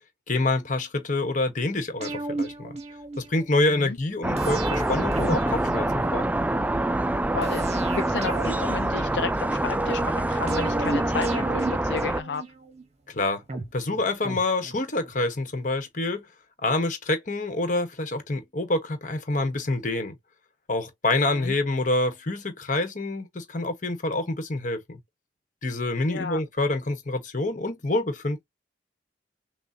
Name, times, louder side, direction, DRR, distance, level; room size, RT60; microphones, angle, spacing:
voice 1, 0.3-2.8 3.2-6.3 13.1-13.4 13.7-16.2 16.6-20.2 20.7-25.0 25.6-28.4, left 2 dB, 45° left, 1.2 m, -27 dB
sound 1, 2.0-3.6 4.4-6.5 7.4-9.6 10.5-12.8 13.5-15.2 15.5-15.6, right 2 dB, 35° right, 1.0 m, -35 dB
sound 2, 4.2-12.2, right 1 dB, 10° right, 0.3 m, -25 dB
voice 2, 7.3-12.4 21.3-21.5 26.1-26.4, left 5 dB, 75° left, 0.5 m, -32 dB
6.1 x 2.3 x 2.8 m
head